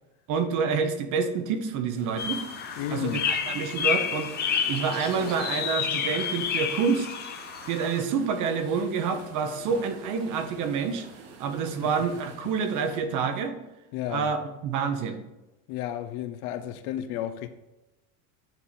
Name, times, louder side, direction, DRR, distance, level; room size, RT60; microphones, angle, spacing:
voice 1, 0.3-2.4 2.9-7.1 7.7-11.1 11.4-13.5 14.1-15.2, right 5 dB, 45° right, 1.0 m, -28 dB
sound 1, 1.9-13.0, right 4 dB, 70° right, 1.6 m, -46 dB
sound 2, 2.2-8.0, left 7 dB, 25° left, 0.6 m, -30 dB
voice 2, 2.8-3.3 13.9-14.3 15.7-17.5, left 11 dB, 60° left, 0.7 m, -32 dB
9.1 x 3.7 x 4.1 m
supercardioid pair, 135°, 41 cm